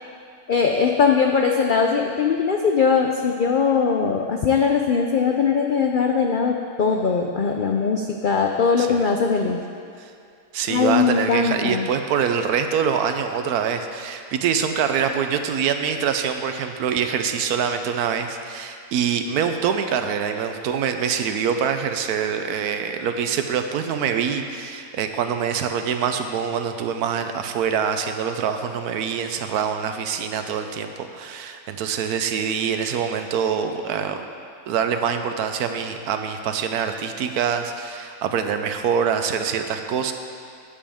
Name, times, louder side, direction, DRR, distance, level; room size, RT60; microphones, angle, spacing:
voice 1, 0.5-9.6 10.7-11.9, left 5 dB, 80° left, 2 dB, 0.4 m, -20 dB
voice 2, 10.5-34.2 34.7-40.1, right 7 dB, 80° right, 7 dB, 1.2 m, -25 dB
12.5 x 8.6 x 3.5 m, 2.3 s
omnidirectional pair, 1.6 m